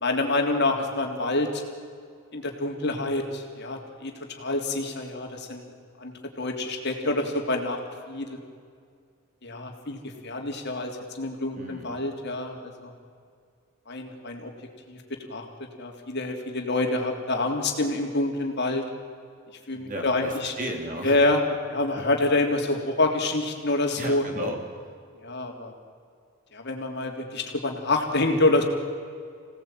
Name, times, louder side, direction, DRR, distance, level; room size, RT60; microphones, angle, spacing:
voice 1, 0.0-1.6 2.3-5.7 6.0-6.1 6.4-7.8 8.1-8.4 9.4-12.9 13.9-14.5 14.9-15.0 15.3-15.5 15.8-18.9 19.7-20.5 21.0-21.4 21.7-24.2 25.2-25.7 26.5-28.6, left 2 dB, 55° left, 3 dB, 3.4 m, -27 dB
voice 2, 11.5-12.0 19.7-21.3 22.0-22.1 24.0-25.0, equal, 40° right, 3 dB, 3.7 m, -35 dB
26.5 x 18.0 x 9.2 m, 2.2 s
head